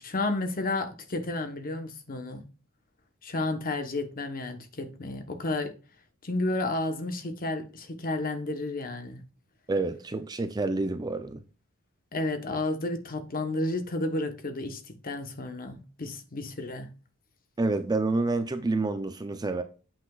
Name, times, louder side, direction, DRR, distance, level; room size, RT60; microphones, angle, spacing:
voice 1, 0.0-2.4 3.2-5.7 6.2-9.2 12.1-16.9, left 2 dB, 40° left, 1.0 m, -32 dB
voice 2, 9.7-11.4 17.6-19.6, right 3 dB, 20° right, 0.5 m, -28 dB
8.4 x 5.8 x 2.4 m
head